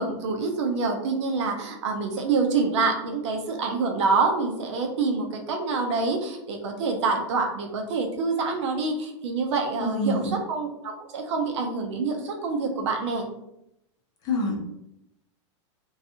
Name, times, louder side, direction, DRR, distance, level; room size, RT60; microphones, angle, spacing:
voice 1, 0.0-10.2 10.5-13.3, right 4 dB, 70° right, 3 dB, 0.6 m, -26 dB
voice 2, 9.8-10.4 14.2-14.5, left 1 dB, 25° left, -1 dB, 0.6 m, -26 dB
2.5 x 2.3 x 2.7 m, 0.81 s
supercardioid pair, 155°, 16 cm